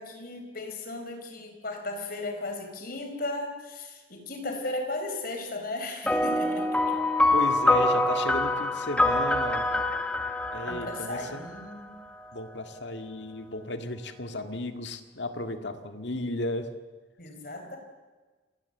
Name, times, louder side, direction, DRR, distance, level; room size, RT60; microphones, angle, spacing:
voice 1, 0.0-7.0 10.6-12.0 17.2-17.8, left 2 dB, 50° left, 5 dB, 4.5 m, -36 dB
sound 1, 6.1-11.8, left 2 dB, 5° left, 1.4 m, -25 dB
voice 2, 7.3-9.7 10.5-11.4 12.3-16.7, left 1 dB, 65° left, 7 dB, 2.0 m, -34 dB
28.5 x 19.0 x 8.0 m, 1.3 s
head